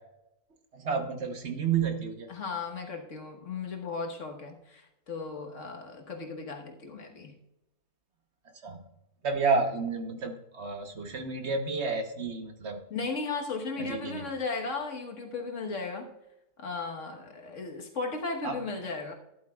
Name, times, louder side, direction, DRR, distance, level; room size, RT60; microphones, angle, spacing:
voice 1, 0.7-2.3 8.4-8.8 9.2-12.8 13.8-14.2 18.4-18.6, right 5 dB, 50° right, 5 dB, 1.2 m, -31 dB
voice 2, 2.3-7.4 12.9-16.1 16.6-19.1, left 4 dB, 50° left, 2 dB, 1.6 m, -36 dB
12.5 x 11.5 x 2.3 m, 0.90 s
omnidirectional pair, 1.7 m